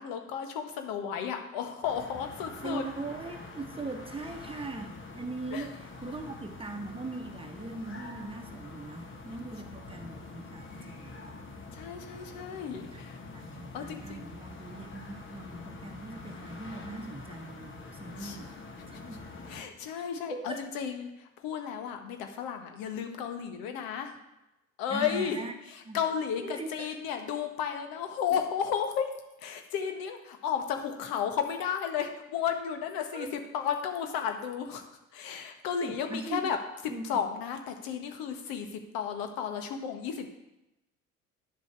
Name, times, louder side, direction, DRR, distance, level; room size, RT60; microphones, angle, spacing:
voice 1, 0.0-2.8 5.5-5.7 11.7-13.2 13.7-14.2 18.2-18.4 19.5-24.1 24.8-25.4 25.9-29.1 29.4-33.3 33.5-34.8 35.1-36.6 37.0-40.3, left 8 dB, 55° left, 6 dB, 1.5 m, -33 dB
sound 1, 1.8-19.6, left 3 dB, 30° left, 1.5 m, -45 dB
voice 2, 2.6-11.4 12.7-13.0 13.3-18.5 18.9-19.2 20.0-20.6 24.9-25.5 25.8-26.0 26.4-26.9 33.1-33.3 35.8-36.5 36.9-37.0, right 3 dB, 15° right, 4 dB, 1.4 m, -40 dB
10.0 x 6.9 x 4.7 m, 0.93 s
figure-of-eight pair, 60°, 41 cm